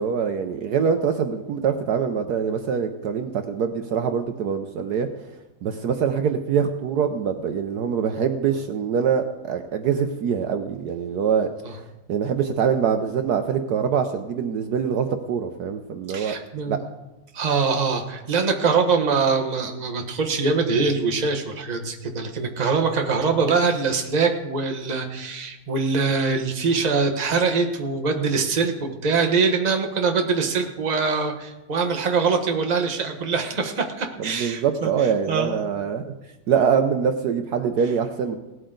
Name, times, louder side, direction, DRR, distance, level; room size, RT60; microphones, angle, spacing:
voice 1, 0.0-5.1 5.6-11.8 12.1-16.3 16.7-16.8 34.2-36.1 36.5-38.4, right 7 dB, 65° right, 6 dB, 1.2 m, -24 dB
voice 2, 16.1-16.8 17.3-34.9 35.3-35.6, right 4 dB, 25° right, 3 dB, 1.2 m, -23 dB
17.5 x 12.5 x 3.9 m, 1.0 s
omnidirectional pair, 2.0 m